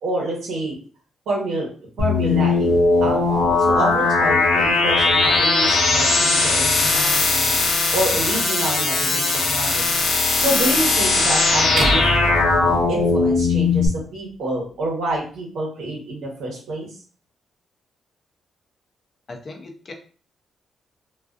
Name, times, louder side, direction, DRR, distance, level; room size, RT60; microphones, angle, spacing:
voice 1, 0.0-0.8 1.3-1.7 2.0-2.7 3.0-7.5 7.9-9.9 10.4-12.3 12.9-16.9, right 2 dB, 85° right, -2 dB, 0.9 m, -27 dB
sound 1, 2.0-13.9, left 3 dB, 80° left, 0.6 m, -19 dB
sound 2, 11.8-14.0, right 2 dB, 50° right, 0.4 m, -26 dB
voice 2, 19.3-19.9, left 2 dB, 35° left, 3 dB, 0.5 m, -37 dB
2.3 x 2.3 x 2.4 m, 0.40 s
cardioid pair, 150°, 0 cm